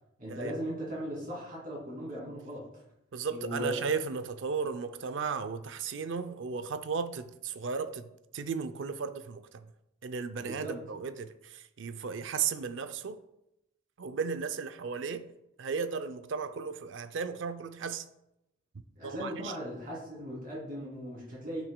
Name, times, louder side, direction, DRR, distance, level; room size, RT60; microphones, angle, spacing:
voice 1, 0.2-2.8 3.3-3.7 10.4-10.8 19.0-21.6, right 1 dB, 45° right, 2.5 m, -38 dB
voice 2, 3.1-9.7 10.0-13.2 14.0-15.3 15.6-18.1 19.0-19.5, right 5 dB, 70° right, 0.4 m, -35 dB
9.8 x 5.8 x 2.2 m
head